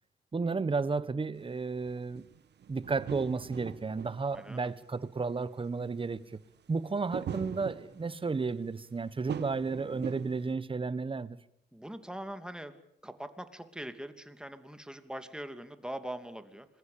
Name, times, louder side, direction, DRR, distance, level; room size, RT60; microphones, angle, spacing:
voice 1, 0.3-2.2 2.7-6.4 6.7-11.4, right 4 dB, 30° right, 1.3 m, -33 dB
sound 1, 1.4-1.5 1.8-4.8 5.4-5.5 5.7-6.0 7.1-8.4 9.3-10.5, right 8 dB, 65° right, 1.6 m, -41 dB
voice 2, 4.3-4.7 9.8-10.0 11.7-12.7 13.0-16.7, right 1 dB, 5° right, 2.7 m, -42 dB
26.0 x 21.5 x 8.7 m
cardioid pair, 90°, 19 cm